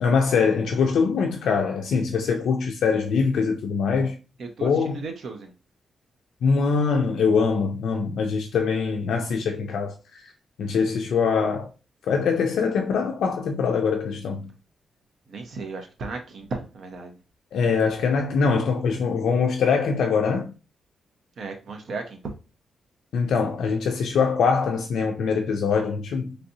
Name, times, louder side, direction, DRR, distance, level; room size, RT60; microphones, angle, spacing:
voice 1, 0.0-4.2 4.6-5.0 6.4-10.3 10.6-11.7 12.0-14.5 17.5-20.5 23.1-26.4, left 5 dB, 75° left, 0.3 m, -23 dB
voice 2, 4.4-5.5 15.3-17.2 21.4-22.2, right 3 dB, 55° right, 0.6 m, -35 dB
3.2 x 2.7 x 2.6 m
wide cardioid pair, 180°, 0 cm